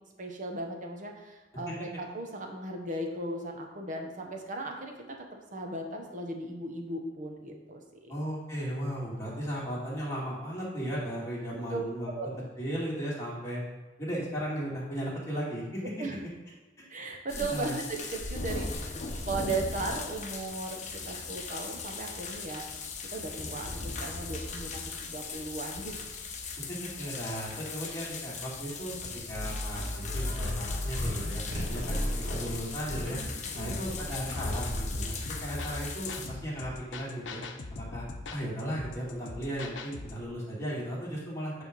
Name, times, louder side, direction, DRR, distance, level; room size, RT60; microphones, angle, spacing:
voice 1, 0.2-4.9 5.5-8.1 11.7-12.4 16.0-16.2 16.9-22.6 23.1-26.1 31.7-32.0 33.4-33.8, right 2 dB, 45° right, 2 dB, 1.1 m, -37 dB
voice 2, 8.1-12.1 12.6-13.6 14.0-15.8 16.8-16.9 17.3-17.7 26.6-28.9 29.3-32.0 32.4-33.2 33.5-35.1 35.4-37.4 37.7-38.0 38.3-41.6, equal, 15° left, -7 dB, 2.4 m, -36 dB
sound 1, 17.3-36.3, left 4 dB, 40° left, 0.9 m, -38 dB
sound 2, 29.3-35.0, left 1 dB, 85° right, 2.1 m, -35 dB
sound 3, 34.9-40.3, left 3 dB, 80° left, 0.8 m, -42 dB
9.1 x 3.6 x 5.3 m, 1.2 s
head